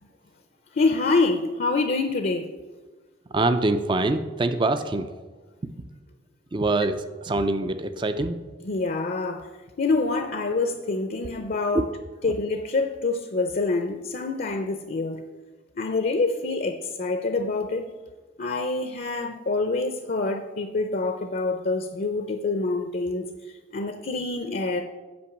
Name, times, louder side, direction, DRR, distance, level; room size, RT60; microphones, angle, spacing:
voice 1, 0.7-2.5 8.6-9.5 9.8-11.9 12.2-15.2 15.8-17.8 18.4-24.8, left 3 dB, 50° left, 0.6 m, -26 dB
voice 2, 3.3-5.1 6.5-8.4 11.7-11.8 12.2-12.3, right 2 dB, 25° right, 0.4 m, -24 dB
8.6 x 5.3 x 7.2 m
head